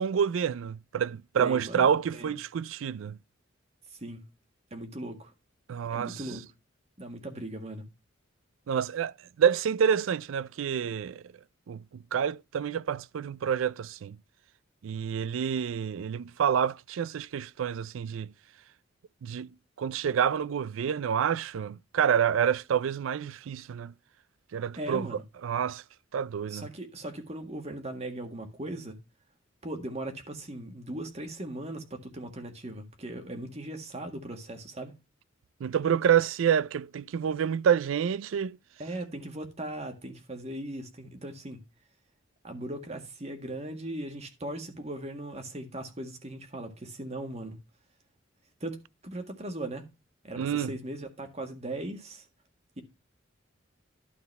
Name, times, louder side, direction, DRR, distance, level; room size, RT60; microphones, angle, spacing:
voice 1, 0.0-3.2 5.7-6.2 8.7-9.1 9.4-11.2 11.7-14.2 14.8-18.3 19.2-23.9 24.5-25.1 25.4-25.8 26.1-26.7 35.6-38.6 50.4-50.7, right 8 dB, 80° right, 0.4 m, -28 dB
voice 2, 1.4-2.3 3.9-4.2 4.7-5.3 5.9-6.4 7.0-7.8 24.8-25.2 26.5-29.0 29.6-34.9 38.8-41.6 42.4-47.6 48.6-49.8 50.2-52.3, right 1 dB, 35° right, 1.7 m, -38 dB
12.0 x 4.0 x 5.3 m
head